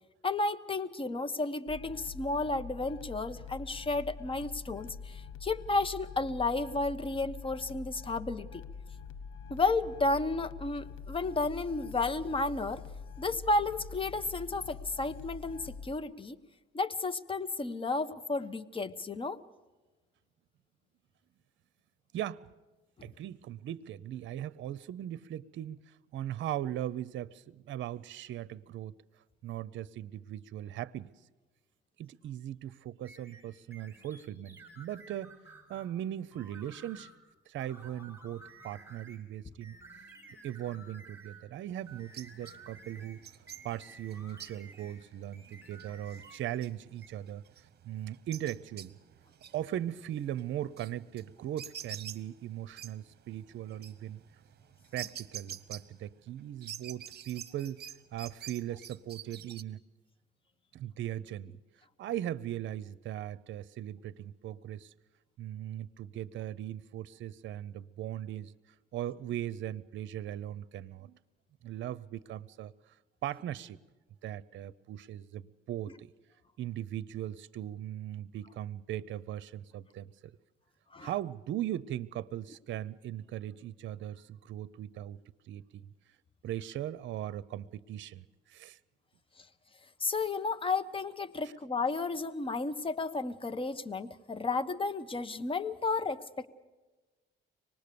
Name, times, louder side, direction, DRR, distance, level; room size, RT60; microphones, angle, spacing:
voice 1, 0.2-8.6 9.5-12.8 13.2-16.4 16.7-19.4 23.0-23.1 80.9-81.1 90.0-96.5, left 3 dB, 25° left, 1.2 m, -32 dB
sound 1, 1.7-16.0, left 6 dB, 85° left, 1.5 m, -45 dB
voice 2, 22.1-22.5 23.0-28.9 29.4-31.1 32.0-35.4 35.7-37.1 37.5-39.8 40.4-43.2 43.6-48.9 49.5-54.2 54.9-57.8 58.1-59.8 60.7-61.5 62.0-64.9 65.4-68.5 68.9-71.2 71.6-72.9 73.2-73.8 74.2-76.1 76.6-80.3 81.0-85.2 85.5-85.9 86.4-88.8, right 12 dB, 70° right, 0.6 m, -39 dB
sound 2, 33.0-35.9 36.3-37.2 37.6-39.2 39.6-41.5 41.9-45.0 45.3-46.7 47.0-47.1, right 2 dB, 10° right, 5.5 m, -53 dB
sound 3, 41.8-56.3 56.6-59.6, right 9 dB, 55° right, 1.0 m, -48 dB
25.0 x 19.5 x 6.9 m
cardioid pair, 90°, 20 cm